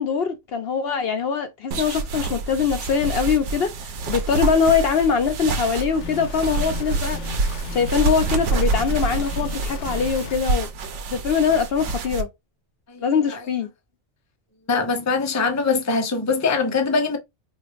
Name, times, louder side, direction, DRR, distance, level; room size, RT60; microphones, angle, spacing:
voice 1, 0.0-7.2 7.7-10.7 11.1-12.3 13.0-13.7, left 6 dB, 60° left, 0.8 m, -22 dB
sound 1, 1.7-12.2, right 3 dB, 90° right, 1.0 m, -27 dB
sound 2, 6.0-10.4, left 3 dB, 85° left, 1.2 m, -35 dB
voice 2, 12.9-13.5 14.7-17.2, left 4 dB, 20° left, 0.5 m, -23 dB
4.6 x 2.5 x 2.4 m
omnidirectional pair, 1.2 m